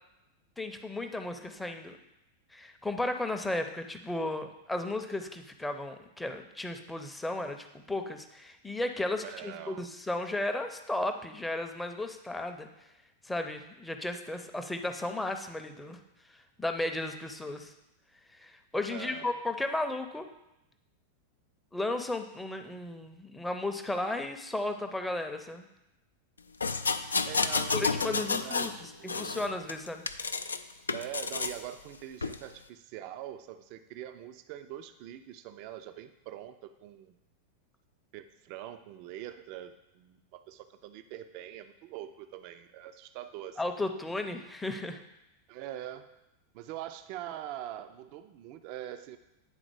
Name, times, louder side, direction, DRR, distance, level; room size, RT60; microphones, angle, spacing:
voice 1, 0.6-2.0 2.5-12.7 13.2-16.0 16.3-17.7 18.3-20.3 21.7-25.7 27.7-30.0 43.6-45.0, left 2 dB, 5° left, 6 dB, 0.6 m, -34 dB
voice 2, 9.2-9.9 18.9-19.4 27.2-29.4 30.9-37.2 38.1-43.6 45.5-46.1 46.5-49.2, right 12 dB, 45° right, 10 dB, 0.4 m, -43 dB
sound 1, 26.6-28.8 29.1-30.6 30.9-31.6 32.2-32.4, left 4 dB, 75° left, 0.3 m, -30 dB
8.8 x 3.9 x 4.7 m, 0.92 s
figure-of-eight pair, 90°, 0 cm